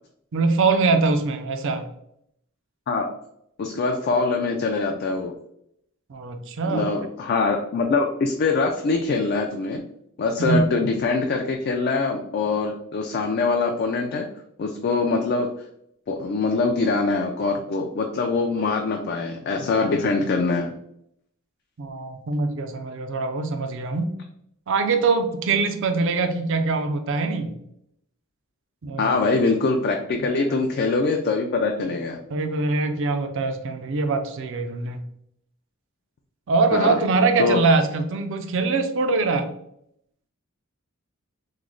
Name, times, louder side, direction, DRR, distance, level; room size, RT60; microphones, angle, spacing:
voice 1, 0.3-1.9 6.1-6.9 10.5-10.7 21.8-24.1 24.7-27.6 28.8-29.2 30.2-30.6 32.3-35.1 36.5-39.5, right 3 dB, 60° right, 7 dB, 0.4 m, -23 dB
voice 2, 3.6-5.3 6.7-9.8 10.2-14.3 14.6-15.5 16.1-20.7 29.0-32.2 36.7-37.0 37.4-37.6, left 3 dB, 50° left, 2 dB, 0.3 m, -23 dB
3.1 x 2.0 x 3.7 m, 0.73 s
head